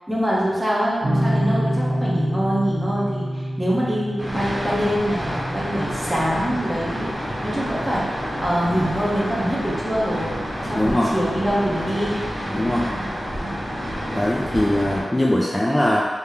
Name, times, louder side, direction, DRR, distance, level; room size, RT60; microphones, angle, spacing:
voice 1, 0.1-10.3 10.6-12.2, equal, 10° right, -7 dB, 1.0 m, -24 dB
sound 1, 1.0-8.2, equal, 70° right, 1.2 m, -27 dB
sound 2, 4.2-15.0, equal, 25° right, 1.2 m, -29 dB
voice 2, 10.7-11.1 12.5-12.9 14.1-16.1, left 1 dB, 20° left, -4 dB, 0.4 m, -21 dB
3.5 x 3.2 x 2.8 m, 1.5 s
wide cardioid pair, 85°, 0 cm